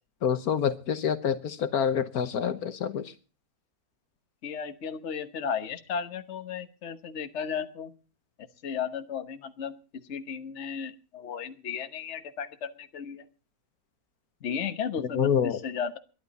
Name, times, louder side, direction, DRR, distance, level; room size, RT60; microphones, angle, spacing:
voice 1, 0.2-3.1 15.1-15.6, left 8 dB, 75° left, 10 dB, 1.5 m, -27 dB
voice 2, 4.4-7.9 8.6-13.3 14.4-16.0, left 7 dB, 50° left, 8 dB, 1.4 m, -34 dB
22.0 x 11.5 x 4.1 m, 0.36 s
omnidirectional pair, 1.6 m